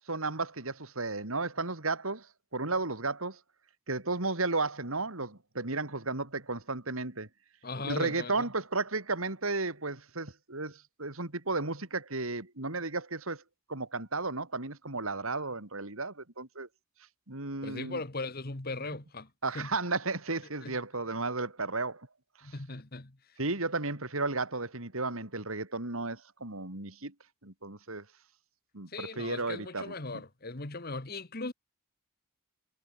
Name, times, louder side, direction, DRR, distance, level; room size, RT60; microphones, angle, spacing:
voice 1, 0.1-2.3 2.5-3.4 3.9-7.3 7.8-13.4 13.7-16.7 17.3-18.0 19.4-22.1 22.4-22.6 23.4-27.1 27.4-28.1 28.7-29.9, right 3 dB, 75° right, 3.6 m, -34 dB
voice 2, 7.6-8.4 17.6-19.3 19.5-19.7 20.6-20.8 22.4-23.2 28.9-31.5, left 3 dB, 45° left, 1.6 m, -38 dB
head